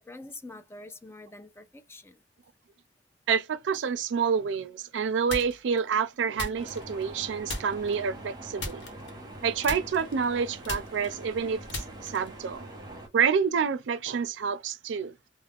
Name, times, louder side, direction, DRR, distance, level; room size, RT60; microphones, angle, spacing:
voice 1, 0.0-2.2, left 2 dB, 15° left, 0.3 m, -45 dB
voice 2, 3.3-8.8 9.4-12.7 13.1-15.1, right 6 dB, 80° right, 0.4 m, -28 dB
sound 1, 5.3-5.8 6.4-7.2 7.5-8.0 8.6-9.4 9.6-12.4, left 2 dB, 75° left, 1.0 m, -37 dB
sound 2, 6.6-13.1, right 1 dB, 25° right, 0.9 m, -44 dB
2.3 x 2.1 x 3.3 m
head